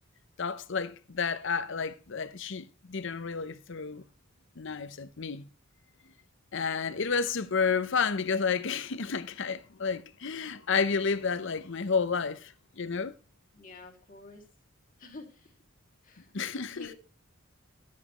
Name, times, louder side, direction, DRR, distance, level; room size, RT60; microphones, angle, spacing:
voice 1, 0.4-4.0 4.6-5.5 6.5-13.1 16.3-16.9, left 5 dB, 65° left, 0.8 m, -31 dB
voice 2, 13.5-14.4 15.0-15.6 16.0-16.3 16.7-16.9, left 3 dB, 45° left, 2.4 m, -48 dB
12.5 x 8.5 x 3.1 m
head